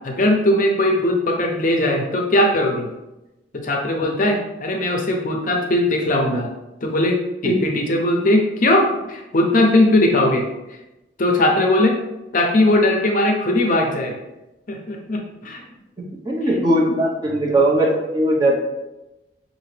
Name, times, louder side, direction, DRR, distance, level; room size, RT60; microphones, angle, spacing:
voice 1, 0.0-2.9 3.5-6.5 6.8-10.5 11.2-12.0 12.3-14.2 14.7-15.6 17.4-17.6, left 1 dB, 45° left, 2 dB, 0.6 m, -19 dB
voice 2, 16.2-18.6, right 1 dB, 20° right, -2 dB, 0.8 m, -19 dB
5.8 x 2.6 x 3.2 m, 0.99 s
head